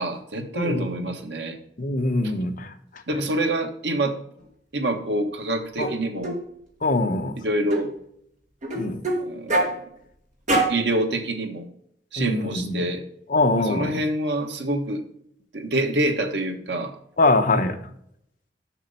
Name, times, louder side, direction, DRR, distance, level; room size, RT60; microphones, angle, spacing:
voice 1, 0.0-1.6 3.1-4.2 4.7-6.4 7.4-7.9 9.2-9.7 10.7-11.6 12.1-13.0 13.6-15.0 15.5-17.0, right 1 dB, 75° right, 5 dB, 1.3 m, -26 dB
voice 2, 0.5-0.9 1.8-2.7 5.8-5.9 6.8-7.3 8.7-9.0 12.2-12.8 13.3-13.9 17.2-17.8, left 2 dB, 50° left, 6 dB, 1.0 m, -22 dB
sound 1, 5.8-5.9 6.2-6.4 7.7-7.9 8.6-9.2 9.5-9.7 10.5-10.8, right 2 dB, 45° right, 2.0 m, -23 dB
7.3 x 6.1 x 5.4 m, 0.70 s
head